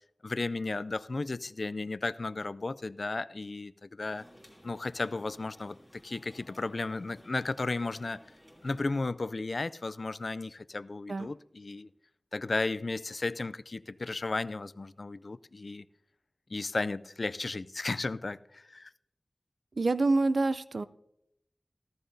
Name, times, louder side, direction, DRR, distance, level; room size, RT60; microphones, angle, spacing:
voice 1, 0.2-4.2 4.6-8.2 8.6-11.9 12.3-15.9 16.5-18.9, left 3 dB, 65° left, 0.3 m, -34 dB
sound 1, 4.0-9.1, equal, 10° right, 2.8 m, -57 dB
voice 2, 19.8-20.8, right 3 dB, 85° right, 0.4 m, -26 dB
14.0 x 14.0 x 2.7 m
wide cardioid pair, 70°, 0 cm